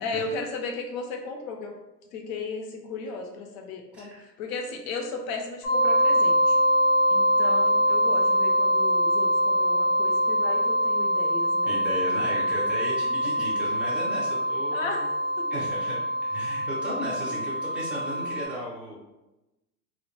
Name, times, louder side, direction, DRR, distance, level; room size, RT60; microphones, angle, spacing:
voice 1, 0.0-1.7 2.1-6.6 7.1-11.7 13.4-13.5 14.7-15.1 15.4-15.5, left 4 dB, 55° left, 2 dB, 0.6 m, -35 dB
voice 2, 3.9-4.3 11.7-15.1 15.5-19.0, equal, 5° right, -7 dB, 0.4 m, -35 dB
sound 1, 5.6-18.4, equal, 85° left, 0.9 m, -24 dB
2.1 x 2.0 x 3.0 m, 0.99 s
hypercardioid pair, 105°, 49 cm